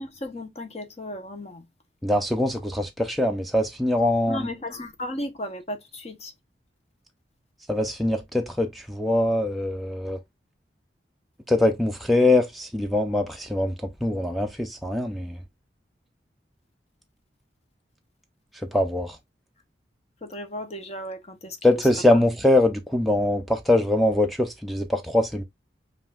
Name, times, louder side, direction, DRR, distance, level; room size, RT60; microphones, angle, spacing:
voice 1, 0.0-1.7 4.3-6.3 20.2-21.6, left 1 dB, 35° left, 0.8 m, -35 dB
voice 2, 2.0-4.5 7.7-10.2 11.5-13.8 14.0-15.4 18.7-19.2 21.6-25.4, left 1 dB, ahead, 0.4 m, -23 dB
5.4 x 2.5 x 2.3 m
head